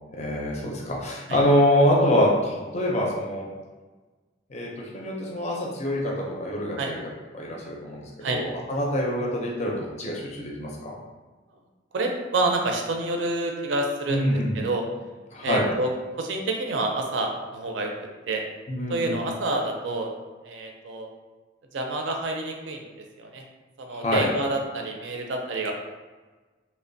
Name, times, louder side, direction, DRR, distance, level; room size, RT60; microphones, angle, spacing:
voice 1, 0.1-3.5 4.5-7.0 7.3-10.9 14.1-14.7 15.3-15.7 18.7-19.3 23.9-24.3, equal, 35° left, -2 dB, 0.4 m, -25 dB
voice 2, 11.9-14.3 14.5-14.8 15.4-15.9 16.2-17.9 18.3-18.4 18.9-20.1 20.4-21.1 21.7-23.4 23.8-25.7, right 2 dB, 75° right, 2 dB, 0.4 m, -28 dB
2.9 x 2.1 x 2.6 m, 1.3 s
head